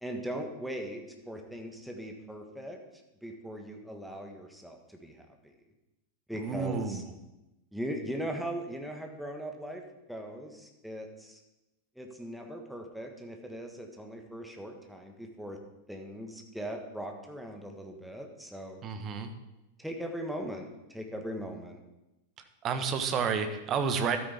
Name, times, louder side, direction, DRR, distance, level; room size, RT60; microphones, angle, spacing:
voice 1, 0.0-2.8 3.2-5.5 6.3-7.0 7.7-9.8 10.1-11.4 11.9-15.6 15.9-18.8 19.8-21.8, equal, ahead, 2 dB, 1.5 m, -39 dB
voice 2, 6.3-7.0 18.8-19.3 22.6-24.2, right 6 dB, 30° right, 8 dB, 1.1 m, -30 dB
12.5 x 9.1 x 3.5 m, 0.97 s
figure-of-eight pair, 90°, 0 cm